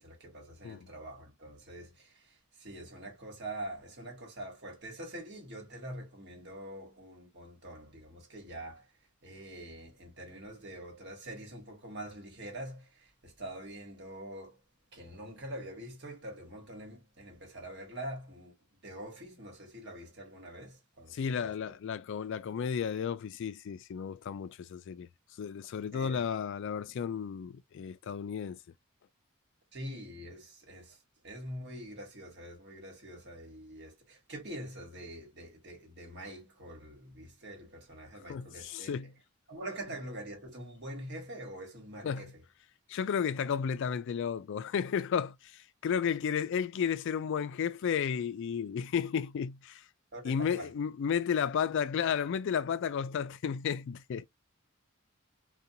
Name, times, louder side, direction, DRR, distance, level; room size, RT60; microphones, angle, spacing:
voice 1, 0.0-8.9 9.2-14.6 14.9-18.5 18.8-21.7 25.9-26.2 29.7-31.0 31.2-38.9 39.5-42.3 50.1-50.7, right 1 dB, 50° right, 1.3 m, -45 dB
voice 2, 21.1-25.1 25.4-28.6 38.3-39.1 42.0-42.3 42.9-49.9 50.2-54.3, left 7 dB, 60° left, 0.3 m, -33 dB
2.6 x 2.3 x 2.7 m
head